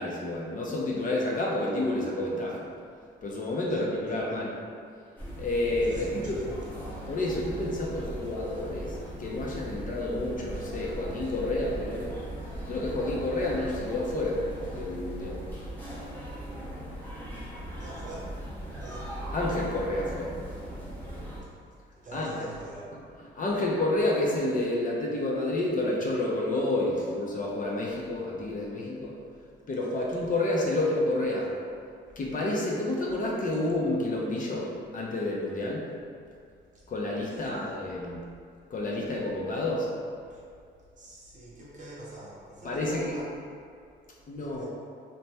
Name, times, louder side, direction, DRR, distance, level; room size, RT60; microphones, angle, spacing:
voice 1, 0.0-2.6 3.2-4.5 5.4-6.4 7.1-12.2 12.7-14.4 14.7-15.4 19.3-20.3 22.1-22.5 22.9-29.1 29.7-31.5 32.2-35.8 36.9-38.2 38.7-39.9 42.6-43.2 44.3-44.7, left 2 dB, 45° left, -3 dB, 0.5 m, -29 dB
voice 2, 3.7-4.5 5.8-6.6 17.8-18.4 18.8-19.2 22.0-22.9 37.3-37.7 40.3-40.4 41.0-43.3 44.4-44.7, right 1 dB, 40° right, -7 dB, 0.9 m, -44 dB
sound 1, 5.2-21.4, right 1 dB, 10° left, 0.7 m, -39 dB
2.8 x 2.1 x 3.3 m, 2.3 s
cardioid pair, 90°, 20 cm